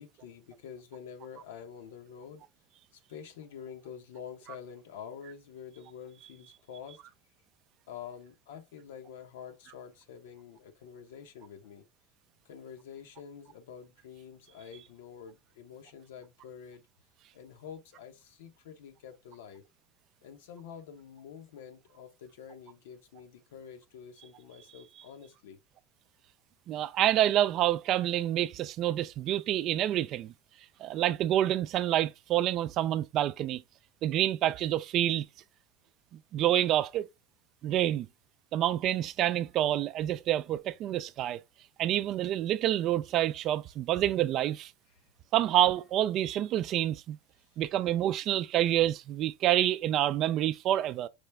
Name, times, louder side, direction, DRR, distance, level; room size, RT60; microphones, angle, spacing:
voice 1, 0.0-2.5 2.9-7.0 7.9-11.8 12.4-16.8 17.3-19.6 20.2-25.6 44.9-45.0, left 7 dB, 90° left, 1.0 m, -47 dB
voice 2, 26.7-30.3 30.8-33.6 34.0-35.3 36.3-37.1 37.6-38.1 38.5-41.4 41.8-44.7 45.3-47.2 47.6-51.1, right 12 dB, 45° right, 0.3 m, -27 dB
5.0 x 2.2 x 3.3 m
supercardioid pair, 130°, 0 cm